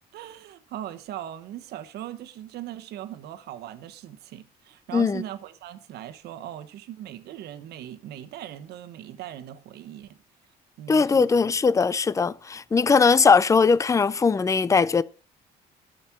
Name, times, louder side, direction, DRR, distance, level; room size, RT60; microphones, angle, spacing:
voice 1, 0.1-10.2 10.8-11.5, right 12 dB, 75° right, 1.2 m, -39 dB
voice 2, 10.9-15.0, left 5 dB, 20° left, 0.5 m, -20 dB
13.0 x 5.4 x 7.3 m
cardioid pair, 110°, 17 cm